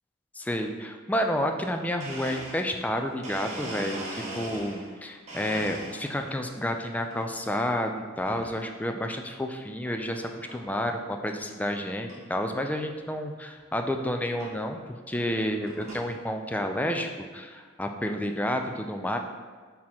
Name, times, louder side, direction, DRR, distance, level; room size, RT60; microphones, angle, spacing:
voice 1, 0.4-14.8 15.1-19.2, equal, 10° left, 5 dB, 0.4 m, -30 dB
Domestic sounds home sounds, 2.0-4.9 5.3-6.3 6.8-7.3 8.3-8.6 9.2-9.3 10.1-10.2 10.5-10.8 11.2-11.3 11.5-11.6 12.1-12.2 13.5-13.6 14.4-14.5 15.2-16.1, right 1 dB, 35° right, 1.4 m, -40 dB
6.1 x 3.7 x 4.3 m, 1.5 s
head